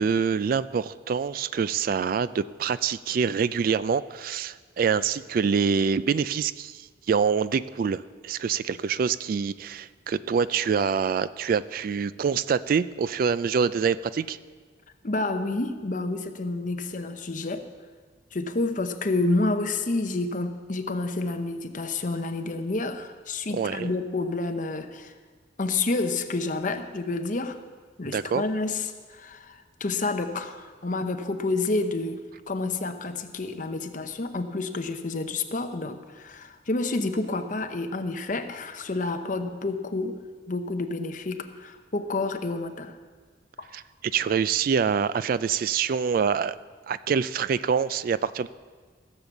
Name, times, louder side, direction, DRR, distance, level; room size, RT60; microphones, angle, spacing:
voice 1, 0.0-14.4 23.5-23.9 28.1-28.4 43.7-46.5 46.9-48.5, right 6 dB, 50° right, 16 dB, 0.3 m, -25 dB
voice 2, 15.0-17.6 18.3-25.1 25.6-27.6 28.0-32.2 32.5-40.2 40.5-42.9 43.6-43.7, left 2 dB, 45° left, 7 dB, 0.8 m, -29 dB
15.5 x 6.9 x 7.1 m, 1.5 s
head